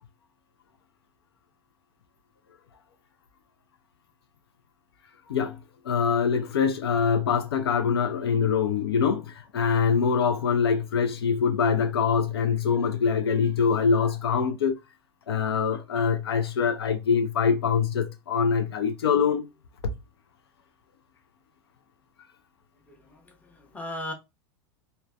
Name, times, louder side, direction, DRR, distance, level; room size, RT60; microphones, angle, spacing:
voice 1, 5.9-14.8 15.3-19.4 19.8-19.9, left 6 dB, 70° left, 0.4 m, -24 dB
voice 2, 22.9-24.1, left 1 dB, 10° left, 0.8 m, -38 dB
3.1 x 2.1 x 2.4 m
figure-of-eight pair, 95°, 14 cm